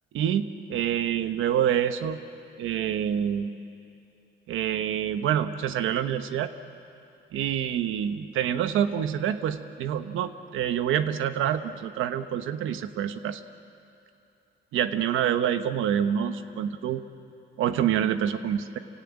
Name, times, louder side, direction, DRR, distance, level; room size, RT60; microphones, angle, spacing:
voice 1, 0.1-2.2 2.6-3.5 4.5-6.5 7.3-13.4 14.7-17.0 17.6-18.8, right 9 dB, 85° right, 10 dB, 1.2 m, -27 dB
28.0 x 17.0 x 9.0 m, 2.7 s
cardioid pair, 90°, 20 cm